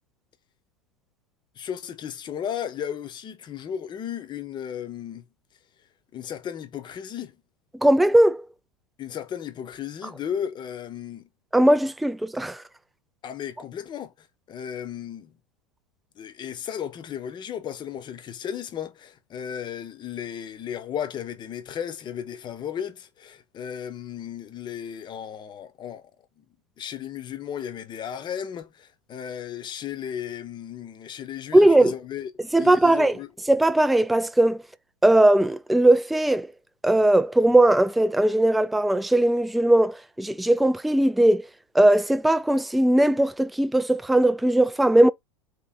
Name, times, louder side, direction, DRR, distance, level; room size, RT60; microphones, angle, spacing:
voice 1, 1.6-5.2 6.1-7.3 9.0-11.3 13.2-15.3 16.2-26.1 26.8-32.3 32.6-33.3, left 9 dB, 30° left, 0.9 m, -35 dB
voice 2, 7.7-8.5 11.5-12.6 31.5-31.9 32.5-33.2 33.5-34.6 35.0-36.5 36.8-41.5 41.7-45.1, right 1 dB, ahead, 0.3 m, -19 dB
4.6 x 2.8 x 3.9 m
figure-of-eight pair, 90°, 16 cm